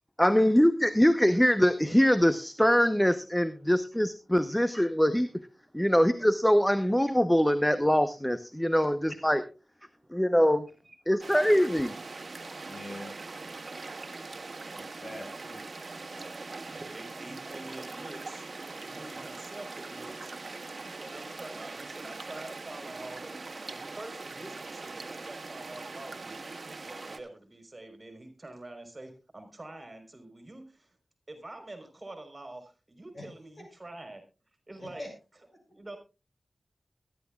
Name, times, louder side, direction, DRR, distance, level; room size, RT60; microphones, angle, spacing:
voice 1, 0.2-5.5 5.7-9.4 10.1-10.7 11.1-11.9, equal, 5° left, 11 dB, 0.8 m, -23 dB
sound 1, 11.2-27.2, right 3 dB, 60° right, 1.6 m, -41 dB
voice 2, 12.6-13.1 14.7-15.6 16.1-16.4 33.1-33.3 34.8-35.1, left 1 dB, 50° left, 4 dB, 6.3 m, -43 dB
voice 3, 13.5-13.8 15.8-18.5 18.8-20.3 20.8-23.4 23.7-26.4 26.8-31.0 31.3-34.2 34.7-35.1 35.7-36.0, right 2 dB, 35° right, 6 dB, 3.8 m, -46 dB
21.5 x 11.5 x 2.3 m, 0.30 s
wide cardioid pair, 70°, 0 cm